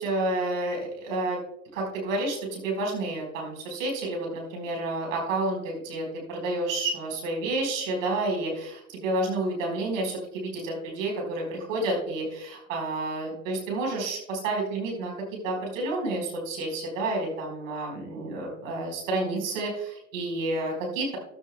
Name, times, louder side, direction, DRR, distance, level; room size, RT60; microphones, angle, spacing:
voice 1, 0.0-1.4 1.7-15.1 15.4-21.2, right 2 dB, 65° right, 0 dB, 4.8 m, -30 dB
14.0 x 12.5 x 2.3 m, 0.80 s
figure-of-eight pair, 70°, 42 cm